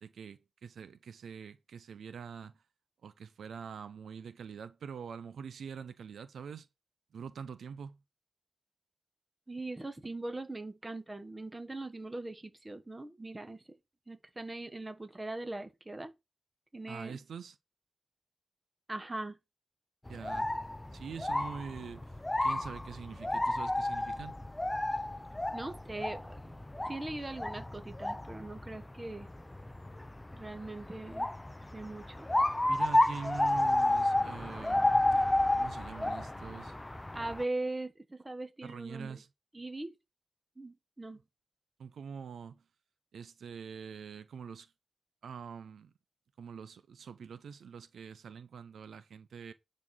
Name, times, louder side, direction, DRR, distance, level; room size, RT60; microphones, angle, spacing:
voice 1, 0.0-2.5 3.0-6.7 7.1-8.0 16.9-17.6 20.1-20.5 20.9-24.3 32.7-35.3 35.6-36.8 38.6-39.3 41.8-42.6 43.1-44.7 45.2-45.9 46.4-49.5, right 6 dB, 75° right, 0.8 m, -45 dB
voice 2, 9.5-13.6 14.1-16.1 16.7-17.2 18.9-19.4 25.5-26.6 26.8-29.3 30.3-31.3 31.7-32.3 37.1-39.2 39.5-40.0 40.6-41.2, right 2 dB, 15° right, 1.4 m, -40 dB
sound 1, 20.1-37.4, left 1 dB, 10° left, 0.4 m, -32 dB
11.0 x 4.3 x 6.4 m
wide cardioid pair, 140°, 0 cm